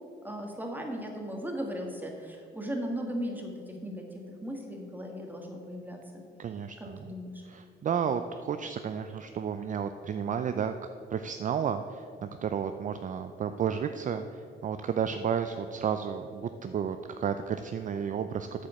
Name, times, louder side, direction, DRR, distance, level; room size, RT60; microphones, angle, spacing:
voice 1, 0.2-6.2 7.0-7.4, equal, 10° right, 1 dB, 1.7 m, -37 dB
voice 2, 6.4-7.0 7.5-10.7 11.1-18.7, right 7 dB, 40° right, 9 dB, 0.4 m, -32 dB
8.8 x 5.0 x 7.0 m, 2.5 s
cardioid pair, 90°, 20 cm